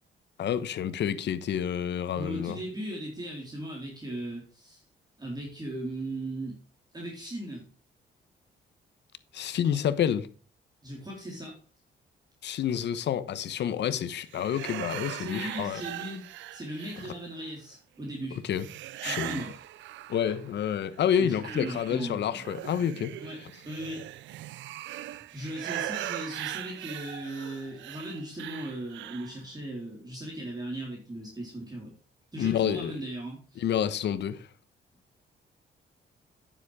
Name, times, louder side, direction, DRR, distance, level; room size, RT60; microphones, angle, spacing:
voice 1, 0.4-2.6 9.3-10.3 12.4-15.8 18.5-18.7 19.0-19.4 20.1-23.1 32.4-32.9 33.6-34.5, left 9 dB, 70° left, 1.0 m, -28 dB
voice 2, 2.1-4.8 5.2-6.6 6.9-7.7 10.8-11.6 15.2-16.2 16.5-18.4 19.0-19.6 21.2-22.5 23.2-23.4 23.6-24.1 25.3-31.9 32.3-33.7, right 1 dB, 20° right, 3.9 m, -38 dB
sound 1, 14.3-17.5 18.6-20.6 20.9-29.4, right 14 dB, 90° right, 0.5 m, -40 dB
9.8 x 7.3 x 4.9 m
cardioid pair, 95°, 19 cm